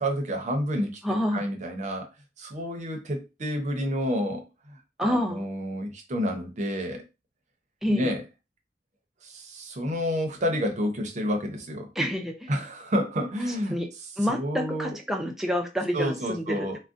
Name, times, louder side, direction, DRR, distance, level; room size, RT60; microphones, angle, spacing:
voice 1, 0.0-1.0 1.3-2.1 2.4-7.0 7.9-8.2 9.2-11.9 12.5-13.8 14.3-15.0 15.9-16.8, equal, 40° right, 3 dB, 0.7 m, -29 dB
voice 2, 1.0-1.5 5.0-5.5 7.8-8.1 12.0-12.5 13.7-13.9 14.2-16.7, equal, ahead, 2 dB, 0.5 m, -28 dB
3.6 x 2.1 x 2.5 m, 0.27 s
head